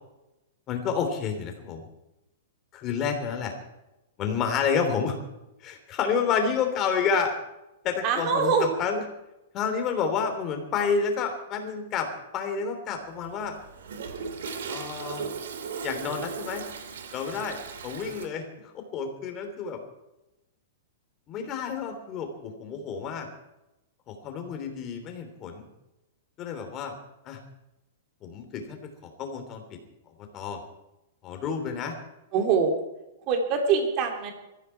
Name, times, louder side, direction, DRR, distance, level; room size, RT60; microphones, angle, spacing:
voice 1, 0.7-1.9 2.7-3.5 4.2-5.2 5.6-7.3 7.8-9.0 9.5-12.1 12.3-13.5 14.7-15.3 15.8-16.6 17.1-17.6 17.8-19.8 21.3-23.3 24.1-25.7 26.4-26.9 27.2-27.4 28.2-28.8 29.0-29.8 30.2-30.6 31.2-31.9, left 6 dB, 25° left, 5 dB, 3.1 m, -29 dB
voice 2, 8.0-8.8 32.3-32.8 33.3-34.3, right 5 dB, 30° right, 4 dB, 3.0 m, -24 dB
Toilet flush, 13.0-18.3, right 5 dB, 80° right, 2.8 m, -37 dB
20.5 x 14.5 x 4.6 m, 0.93 s
supercardioid pair, 165°, 0 cm